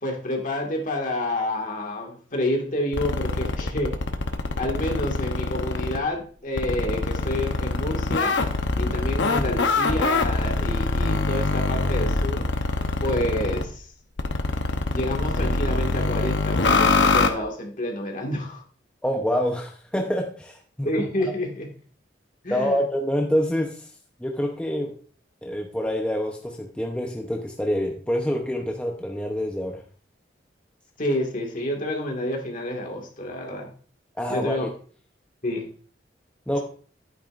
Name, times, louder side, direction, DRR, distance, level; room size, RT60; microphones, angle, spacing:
voice 1, 0.0-4.1 4.6-8.4 8.8-12.5 13.0-13.9 14.9-18.6 20.8-21.7 22.4-22.8 31.0-33.7 34.3-34.7 35.4-35.6, left 1 dB, 45° left, 1 dB, 2.0 m, -29 dB
sound 1, 2.9-6.0 6.6-13.6 14.2-17.3, left 3 dB, 75° left, 0.9 m, -24 dB
voice 2, 19.0-20.9 22.5-23.7 24.2-25.0 25.4-29.8 34.2-34.7 36.5-36.6, equal, 5° left, 1 dB, 0.8 m, -26 dB
11.0 x 9.2 x 2.5 m, 0.43 s
head